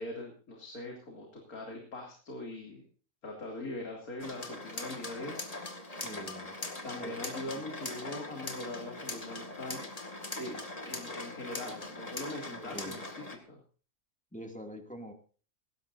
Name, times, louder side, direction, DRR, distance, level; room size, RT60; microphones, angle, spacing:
voice 1, 0.0-2.8 3.2-5.4 5.9-6.0 6.8-9.8 10.4-13.6, left 1 dB, 75° left, 1 dB, 3.1 m, -42 dB
sound 1, 4.2-13.4, left 2 dB, 25° left, 2.1 m, -41 dB
voice 2, 5.9-6.5 7.0-7.6 12.5-13.0 14.3-15.1, equal, 5° left, 3 dB, 2.2 m, -45 dB
19.5 x 16.5 x 2.6 m, 0.40 s
omnidirectional pair, 1.5 m